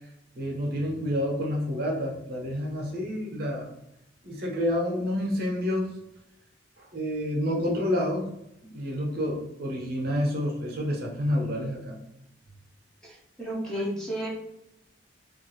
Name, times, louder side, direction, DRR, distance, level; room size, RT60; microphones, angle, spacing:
voice 1, 0.3-3.7 4.2-5.9 6.8-8.3 8.6-12.0, left 1 dB, 55° right, -1 dB, 0.7 m, -29 dB
voice 2, 13.0-14.3, equal, 5° left, -5 dB, 0.7 m, -32 dB
2.5 x 2.4 x 3.0 m, 0.84 s
head